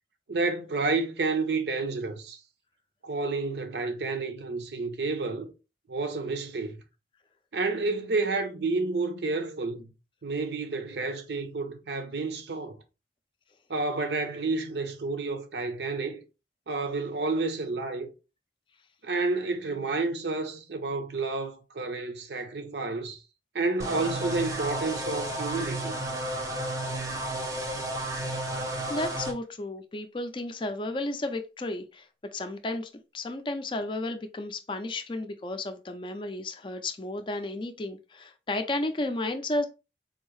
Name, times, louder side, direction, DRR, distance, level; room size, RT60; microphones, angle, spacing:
voice 1, 0.3-2.4 3.0-5.5 5.9-6.8 7.5-9.9 10.2-12.8 13.7-16.2 16.7-18.1 19.0-23.2 23.5-26.0, right 3 dB, 70° right, 0.7 m, -30 dB
sound 1, 23.8-29.3, right 1 dB, 15° right, 0.6 m, -32 dB
voice 2, 28.9-32.1 32.3-39.7, left 2 dB, 25° left, 0.4 m, -33 dB
3.9 x 2.7 x 3.1 m
head